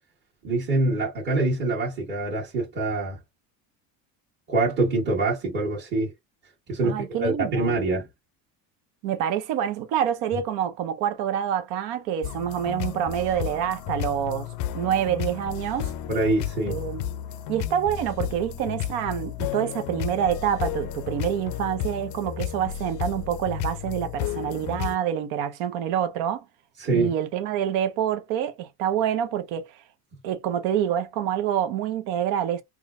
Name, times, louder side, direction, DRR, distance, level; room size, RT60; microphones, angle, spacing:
voice 1, 0.4-3.2 4.5-6.1 6.7-8.1 16.1-16.8 26.8-27.1, right 2 dB, 30° right, 1.5 m, -25 dB
voice 2, 6.8-7.8 9.0-14.5 14.7-15.9 16.7-17.1 17.5-26.4 26.9-29.6 30.2-32.6, right 9 dB, 70° right, 0.8 m, -27 dB
sound 1, 12.2-25.0, left 11 dB, 55° left, 0.5 m, -32 dB
3.6 x 2.4 x 2.5 m
cardioid pair, 160°, 38 cm